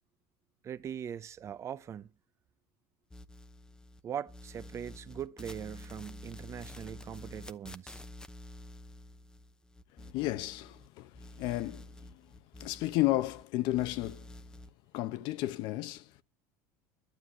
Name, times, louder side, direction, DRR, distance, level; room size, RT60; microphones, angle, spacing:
voice 1, 0.6-2.1 4.0-8.0, right 9 dB, 35° right, 0.7 m, -41 dB
sound 1, 3.1-4.0 4.3-10.9 11.1-13.4 13.7-14.7, left 1 dB, 10° left, 0.8 m, -49 dB
voice 2, 10.0-12.2 12.6-14.3 14.9-16.2, left 16 dB, 65° left, 0.9 m, -33 dB
12.0 x 7.6 x 8.9 m
supercardioid pair, 110°, 8 cm